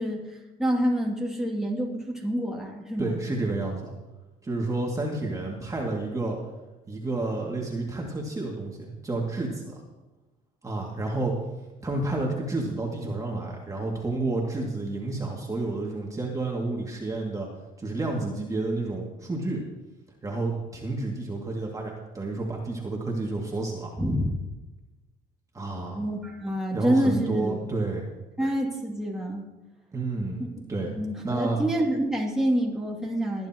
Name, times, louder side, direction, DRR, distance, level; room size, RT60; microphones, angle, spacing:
voice 1, 0.0-3.2 24.0-24.4 25.9-27.6 28.4-29.5 30.4-30.5 30.9-33.5, equal, 5° right, -3 dB, 2.6 m, -27 dB
voice 2, 3.0-3.9 4.4-6.4 6.9-9.8 10.6-11.3 11.8-17.5 17.8-19.6 20.2-23.9 25.5-26.0 26.7-28.1 29.9-30.4 30.7-30.9 31.2-31.6, right 2 dB, 20° right, -2 dB, 2.4 m, -30 dB
20.0 x 10.5 x 3.0 m, 1.1 s
cardioid pair, 110°, 17 cm